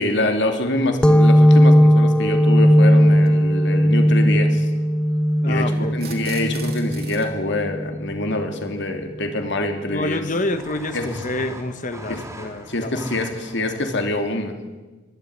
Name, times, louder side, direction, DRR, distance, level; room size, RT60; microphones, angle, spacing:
voice 1, 0.0-4.7 5.5-10.2 10.9-11.1 12.1-12.2 12.7-14.6, left 1 dB, 65° left, 5 dB, 2.9 m, -25 dB
sound 1, 1.0-8.3, equal, 5° left, 0.6 m, -16 dB
sound 2, 1.6-1.7 3.1-3.3 5.9-7.3, right 6 dB, 55° right, 3.1 m, -39 dB
sound 3, 3.4-3.5 5.1-5.8 8.1-8.2 8.4-8.8 9.1-14.0, right 1 dB, 15° right, 3.2 m, -41 dB
voice 2, 5.4-5.9 9.9-13.0, left 2 dB, 40° left, 9 dB, 1.3 m, -27 dB
23.5 x 12.0 x 9.7 m, 1.2 s
head